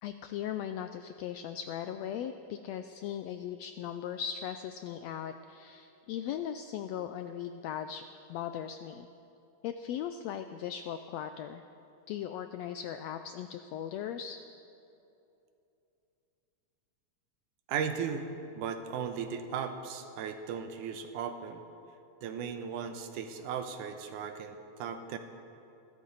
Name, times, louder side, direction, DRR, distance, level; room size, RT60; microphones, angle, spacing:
voice 1, 0.0-8.0 8.3-9.1 9.6-11.6 12.1-14.4, left 9 dB, 85° left, 8 dB, 1.5 m, -38 dB
voice 2, 17.7-18.3 18.5-21.6 22.2-25.2, right 7 dB, 90° right, 7 dB, 2.5 m, -36 dB
27.5 x 12.5 x 4.0 m, 2.8 s
omnidirectional pair, 3.5 m